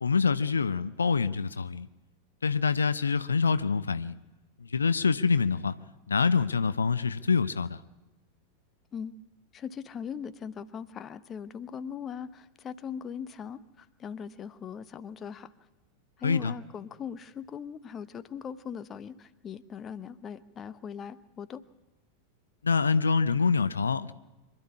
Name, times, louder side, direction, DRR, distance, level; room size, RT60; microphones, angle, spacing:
voice 1, 0.0-1.9 2.4-4.1 4.7-5.7 6.1-7.8 16.2-16.5 22.6-24.1, left 5 dB, 75° left, 14 dB, 0.6 m, -25 dB
voice 2, 9.5-15.5 16.2-21.6, left 7 dB, 25° left, 14 dB, 0.9 m, -40 dB
25.0 x 12.0 x 9.8 m, 1.1 s
figure-of-eight pair, 90°, 0 cm